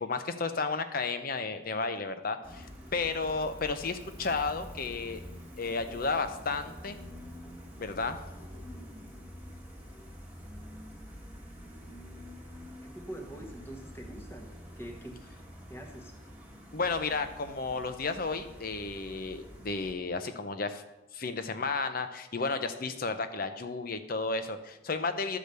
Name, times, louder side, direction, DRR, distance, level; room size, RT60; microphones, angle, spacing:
voice 1, 0.0-2.7 2.9-5.2 5.6-7.0 7.8-8.2 16.7-20.8 21.1-25.4, left 4 dB, 45° left, 9 dB, 0.7 m, -32 dB
Gull seagull, 2.4-19.9, equal, 10° right, 1.4 m, -47 dB
voice 2, 12.8-15.2 15.7-16.1, right 1 dB, 10° left, 1 dB, 1.2 m, -44 dB
12.0 x 5.0 x 6.8 m, 0.98 s
head